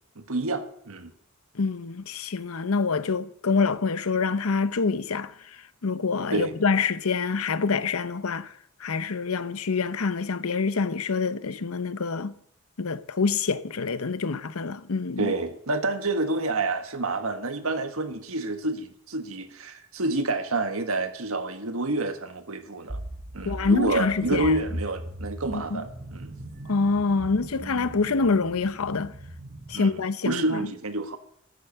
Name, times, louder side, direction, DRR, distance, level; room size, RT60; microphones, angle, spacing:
voice 1, 0.2-1.1 6.3-6.6 15.2-23.0 23.3-26.3 29.7-29.9 30.2-31.2, right 2 dB, 75° right, 1.6 m, -28 dB
voice 2, 1.6-5.3 5.8-8.5 8.8-12.3 12.8-15.3 23.4-24.6 25.5-25.8 26.7-29.1 29.7-30.7, left 4 dB, 80° left, 0.8 m, -26 dB
sound 1, 22.9-29.8, right 1 dB, 35° right, 1.1 m, -39 dB
13.5 x 10.0 x 6.9 m
head